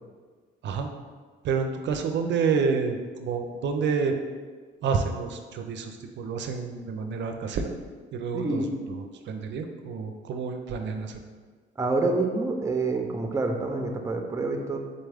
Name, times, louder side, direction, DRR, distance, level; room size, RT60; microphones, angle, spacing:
voice 1, 1.4-4.1 4.8-7.7 8.1-11.2, right 5 dB, 65° right, 5 dB, 0.4 m, -29 dB
voice 2, 8.3-8.7 11.8-14.8, right 3 dB, 15° right, 3 dB, 0.5 m, -27 dB
3.9 x 3.4 x 3.4 m, 1.5 s
cardioid pair, 90°, 20 cm